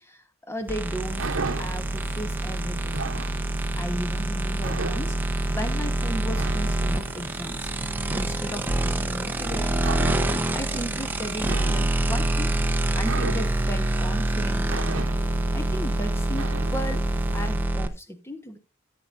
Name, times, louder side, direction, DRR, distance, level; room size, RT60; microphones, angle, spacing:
voice 1, 0.0-3.3 3.7-5.2 5.5-7.7 8.1-12.6 12.9-15.1 15.5-17.0 17.3-18.6, equal, 10° left, 1.1 m, -35 dB
sound 1, 0.6-17.8, right 3 dB, 75° right, 0.9 m, -36 dB
sound 2, 0.7-17.9, right 1 dB, 10° right, 0.8 m, -26 dB
14.5 x 8.5 x 2.6 m
head